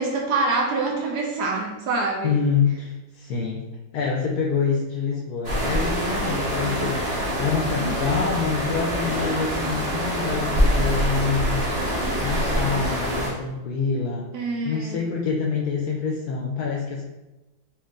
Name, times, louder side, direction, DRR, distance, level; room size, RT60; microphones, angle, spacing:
voice 1, 0.0-2.4 14.3-15.0, right 3 dB, 70° right, 0 dB, 1.1 m, -25 dB
voice 2, 2.2-3.6 3.9-7.0 7.4-11.7 12.2-14.3 14.6-17.0, left 5 dB, 70° left, -1 dB, 0.9 m, -26 dB
sound 1, 5.4-13.3, equal, 25° right, 1.0 m, -25 dB
4.5 x 2.5 x 3.6 m, 1.1 s
omnidirectional pair, 2.1 m